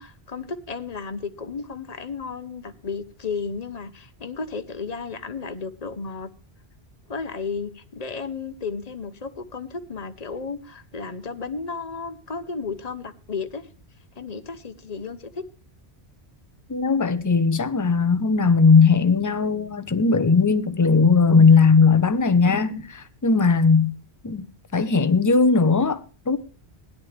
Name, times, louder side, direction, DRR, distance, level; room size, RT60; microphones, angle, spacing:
voice 1, 0.0-6.3 7.1-13.7 14.1-15.4, left 4 dB, 40° left, 1.1 m, -33 dB
voice 2, 16.7-23.9 24.2-24.5 24.7-26.4, left 4 dB, 20° left, 0.7 m, -18 dB
17.0 x 10.5 x 3.4 m
omnidirectional pair, 1.1 m